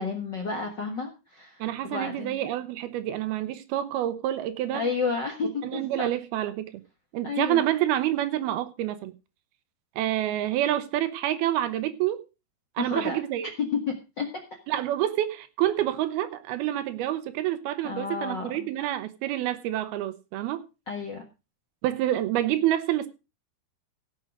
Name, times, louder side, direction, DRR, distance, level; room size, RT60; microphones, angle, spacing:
voice 1, 0.0-2.5 4.7-6.1 7.2-7.7 12.8-13.2 13.6-14.3 17.8-18.5 20.9-21.2, left 5 dB, 75° left, 1.0 m, -31 dB
voice 2, 1.6-4.8 5.6-6.7 7.1-9.1 10.0-12.2 12.8-13.5 14.7-20.6 21.8-23.1, right 13 dB, 75° right, 2.8 m, -28 dB
16.5 x 6.7 x 4.9 m
omnidirectional pair, 4.7 m